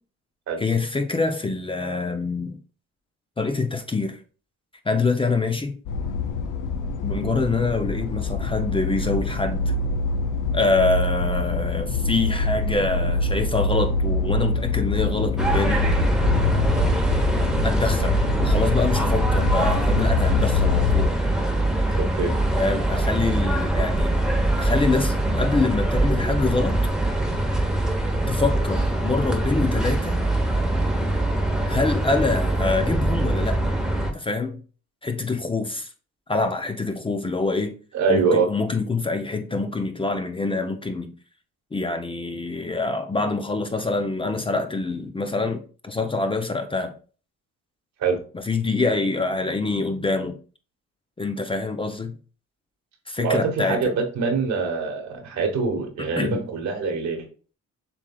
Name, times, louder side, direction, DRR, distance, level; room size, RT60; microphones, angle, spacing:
voice 1, 0.6-2.6 3.4-4.2 4.9-5.8 7.0-9.7 10.5-15.9 17.6-21.1 22.6-24.2 24.6-26.8 28.3-30.2 31.6-33.6 34.1-34.6 35.0-35.9 36.3-37.8 38.1-41.1 41.7-46.9 48.3-50.4 51.2-52.2 53.1-53.8 56.2-56.4, left 3 dB, 15° left, 0.6 m, -25 dB
sound 1, 5.9-21.1, left 3 dB, 85° left, 0.7 m, -25 dB
sound 2, 15.4-34.1, right 1 dB, ahead, 0.9 m, -23 dB
voice 2, 21.9-22.3 37.9-38.5 48.0-48.2 53.2-57.3, right 4 dB, 65° right, 1.2 m, -24 dB
7.0 x 3.2 x 2.3 m
cardioid pair, 90°, 30 cm